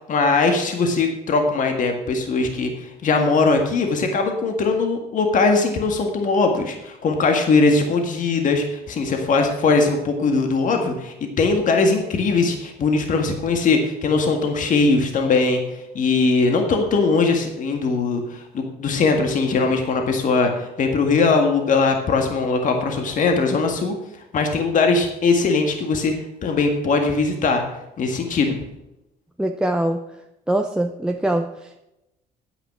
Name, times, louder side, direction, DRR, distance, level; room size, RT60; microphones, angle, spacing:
voice 1, 0.0-15.6 15.9-23.9 24.3-26.1 26.4-27.6 28.0-28.6, left 3 dB, 50° left, 4 dB, 1.8 m, -20 dB
voice 2, 29.4-30.0 30.5-31.8, right 1 dB, 5° right, 3 dB, 0.6 m, -23 dB
9.2 x 9.2 x 6.1 m, 0.92 s
cardioid pair, 110°, 17 cm